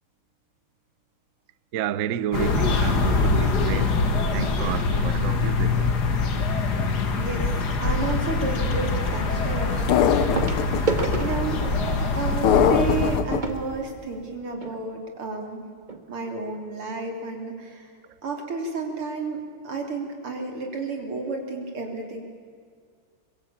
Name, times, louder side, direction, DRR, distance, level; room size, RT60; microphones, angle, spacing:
voice 1, 1.7-4.0 4.3-6.0, right 9 dB, 70° right, 0.7 m, -30 dB
sound 1, 2.3-13.2, left 3 dB, 50° left, 2.2 m, -24 dB
voice 2, 7.2-7.5 7.8-10.5 11.2-11.7 12.1-15.7 16.1-17.9 18.2-19.4 19.6-22.2, right 3 dB, 85° right, 4.3 m, -31 dB
sound 2, 9.9-10.8 12.4-13.4, left 9 dB, 85° left, 1.9 m, -20 dB
sound 3, 10.3-14.8 15.5-15.6 15.8-16.0 16.5-16.6, right 3 dB, 25° right, 1.6 m, -32 dB
24.0 x 23.0 x 8.8 m
omnidirectional pair, 2.3 m